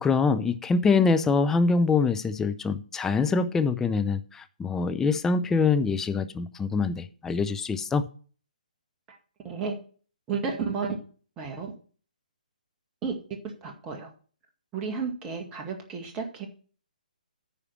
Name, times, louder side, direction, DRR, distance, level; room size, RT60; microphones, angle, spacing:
voice 1, 0.0-8.0, left 4 dB, 10° left, 9 dB, 0.6 m, -24 dB
voice 2, 9.4-9.7 10.3-11.0 11.4-11.7 13.0-13.1 13.4-14.1 14.7-16.5, right 5 dB, 20° right, 3 dB, 1.9 m, -32 dB
9.6 x 5.0 x 7.4 m, 0.41 s
figure-of-eight pair, 135°, 5 cm